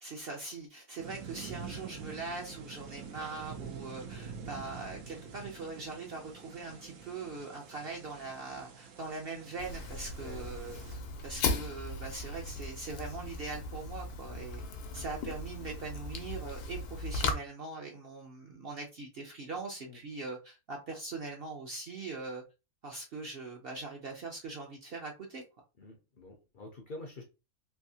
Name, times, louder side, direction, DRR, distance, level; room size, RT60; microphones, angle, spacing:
voice 1, 0.0-11.0 11.2-14.6 14.9-22.4 22.8-25.4, right 3 dB, 55° right, 0 dB, 0.7 m, -41 dB
sound 1, 1.0-11.0, right 6 dB, 80° right, 1.2 m, -47 dB
Fire, 9.6-17.3, left 3 dB, 85° left, 1.2 m, -37 dB
voice 2, 25.8-27.2, left 2 dB, 55° left, 2 dB, 0.5 m, -47 dB
3.4 x 2.7 x 2.7 m, 0.28 s
omnidirectional pair, 1.6 m